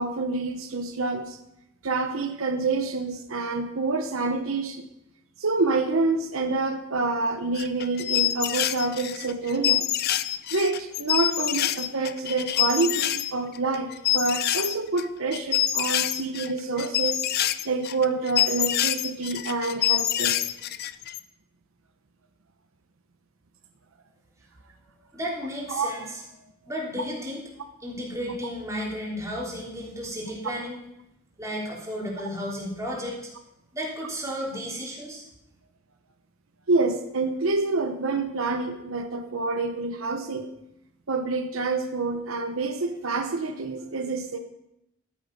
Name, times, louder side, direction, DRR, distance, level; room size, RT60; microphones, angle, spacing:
voice 1, 0.0-1.4 1.8-4.9 5.4-9.9 10.5-17.2 17.6-20.4 25.7-25.9 36.7-40.5 41.1-44.4, right 3 dB, 85° right, 7 dB, 0.9 m, -27 dB
sound 1, 7.6-13.3 13.6-15.0 15.3-21.2, left 12 dB, 50° left, 0.5 m, -26 dB
voice 2, 25.1-26.2 26.6-27.4 27.8-30.8 31.4-33.3 33.7-35.2, equal, 15° right, -4 dB, 3.4 m, -33 dB
12.5 x 8.6 x 5.4 m, 0.84 s
head